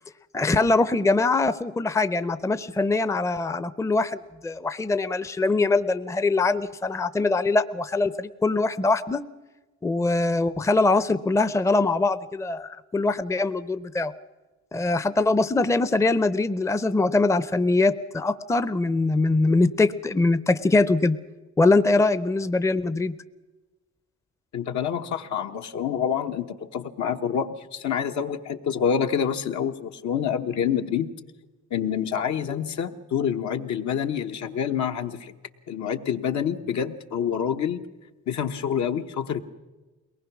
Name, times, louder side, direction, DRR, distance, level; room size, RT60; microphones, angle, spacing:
voice 1, 0.3-9.2 9.8-14.1 14.7-21.2 21.6-23.1, left 3 dB, 10° left, 13 dB, 0.6 m, -22 dB
voice 2, 24.5-31.1 31.7-35.3 35.7-37.8 38.3-39.4, left 8 dB, 70° left, 5 dB, 1.1 m, -27 dB
22.0 x 19.0 x 6.0 m, 1.2 s
cardioid pair, 90°, 30 cm